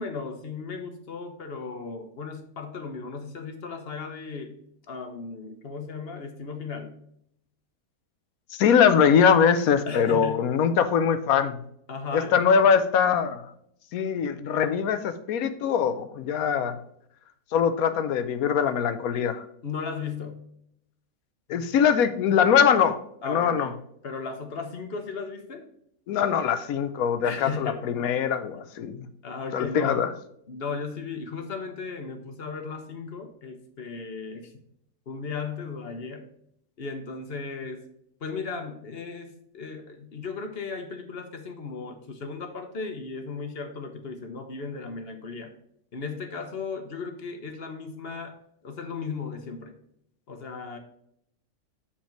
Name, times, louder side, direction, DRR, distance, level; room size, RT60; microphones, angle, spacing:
voice 1, 0.0-4.5 4.9-6.9 9.9-10.5 11.9-12.4 19.6-20.5 23.2-25.6 27.2-27.9 29.2-30.0 30.5-34.5 35.1-36.3 36.8-37.8 38.2-45.5 45.9-48.4 48.6-49.7 50.3-50.8, left 4 dB, 45° left, 5 dB, 1.2 m, -36 dB
voice 2, 8.5-11.6 12.1-13.5 13.9-16.8 17.5-19.4 21.5-23.0 23.2-23.7 26.1-29.0 29.5-30.1, left 7 dB, 80° left, 11 dB, 1.1 m, -22 dB
7.2 x 4.4 x 4.5 m, 0.72 s
omnidirectional pair, 1.5 m